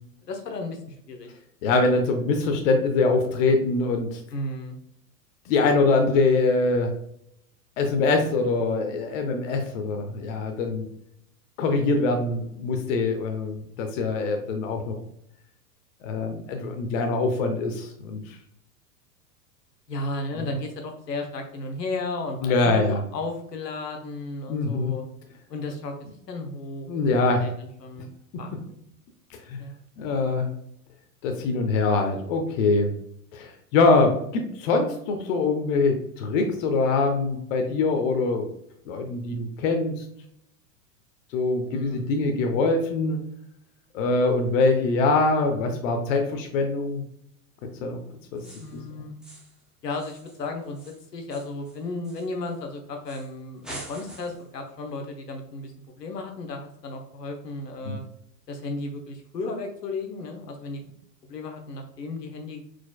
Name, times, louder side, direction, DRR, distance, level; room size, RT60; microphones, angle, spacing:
voice 1, 0.2-1.3 4.3-4.8 19.9-25.0 25.5-26.0 26.3-28.1 28.4-28.5 29.6-29.8 41.7-42.3 48.6-49.1 49.8-55.7 56.0-58.0 58.5-60.8 61.2-62.7, left 2 dB, 75° left, 3 dB, 1.1 m, -34 dB
voice 2, 1.6-4.2 5.5-6.9 7.8-10.8 11.6-14.9 16.0-18.4 20.4-20.5 22.4-23.0 24.5-24.9 26.9-27.5 29.5-29.6 30.0-30.5 31.2-32.9 33.3-38.5 38.9-40.0 41.3-43.2 43.9-47.0 47.8-48.0 48.3-48.4 49.0-49.2 57.9-58.0, left 3 dB, 50° left, 4 dB, 0.9 m, -23 dB
sound 1, 48.4-48.8 49.2-49.6 49.9-52.6 53.1-53.3 53.6-54.5, right 1 dB, ahead, 0.4 m, -45 dB
4.7 x 4.1 x 2.2 m, 0.73 s
figure-of-eight pair, 95°, 49 cm